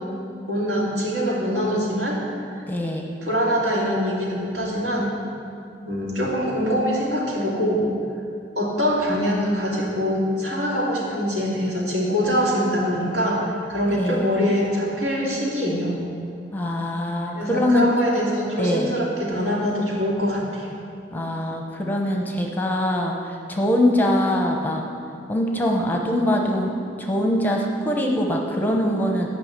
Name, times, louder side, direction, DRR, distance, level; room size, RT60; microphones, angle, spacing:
voice 1, 0.5-2.2 3.2-5.1 5.9-7.8 8.5-15.9 17.3-20.7, equal, 70° right, -4 dB, 2.6 m, -23 dB
voice 2, 2.7-3.1 14.0-14.3 16.5-17.9 18.6-18.9 21.1-24.8 25.3-26.7 27.0-29.3, left 1 dB, 10° left, 1 dB, 0.8 m, -23 dB
10.5 x 5.7 x 8.1 m, 2.4 s
head